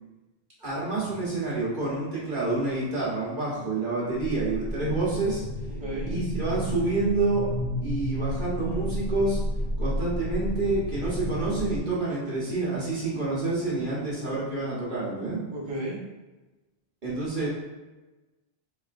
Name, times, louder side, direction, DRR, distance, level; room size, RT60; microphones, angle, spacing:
voice 1, 0.6-5.4 6.1-7.4 7.8-9.4 9.8-15.4 17.0-17.5, right 3 dB, 50° right, -8 dB, 1.2 m, -28 dB
sound 1, 4.1-11.8, equal, 30° left, 0.8 m, -32 dB
voice 2, 5.8-6.1 15.5-16.0 17.3-17.5, right 1 dB, 25° right, -8 dB, 0.9 m, -34 dB
4.1 x 3.2 x 2.5 m, 1.1 s
omnidirectional pair, 1.1 m